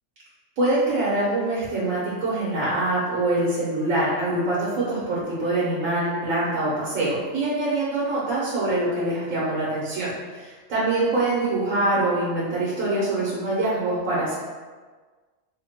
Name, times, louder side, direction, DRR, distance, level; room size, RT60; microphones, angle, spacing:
voice 1, 0.6-14.4, right 2 dB, 90° right, -8 dB, 1.3 m, -24 dB
3.7 x 2.1 x 4.3 m, 1.4 s
omnidirectional pair, 1.4 m